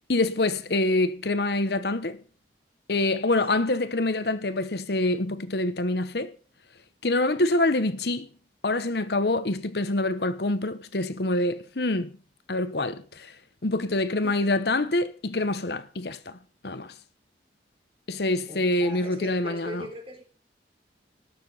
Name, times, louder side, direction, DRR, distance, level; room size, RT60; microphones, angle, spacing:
voice 1, 0.1-2.2 2.9-6.3 7.0-8.3 8.6-12.1 12.5-13.4 13.6-16.4 16.6-16.9 18.1-19.8, left 2 dB, 65° left, 1.0 m, -26 dB
voice 2, 14.2-14.5 18.5-20.2, equal, 30° right, 3.6 m, -40 dB
19.0 x 6.9 x 5.6 m
head